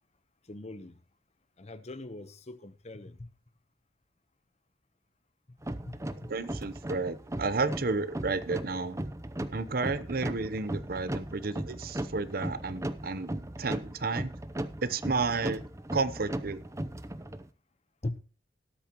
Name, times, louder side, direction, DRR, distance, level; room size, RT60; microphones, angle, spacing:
voice 1, 0.4-1.0 1.6-3.3 5.5-6.3 18.0-18.2, left 2 dB, 40° left, 0.9 m, -41 dB
sound 1, 5.6-17.5, right 1 dB, 15° right, 0.7 m, -37 dB
voice 2, 6.3-9.0 9.5-14.3 14.8-15.6 15.9-16.6, right 3 dB, 55° right, 0.8 m, -32 dB
18.5 x 8.6 x 3.0 m
head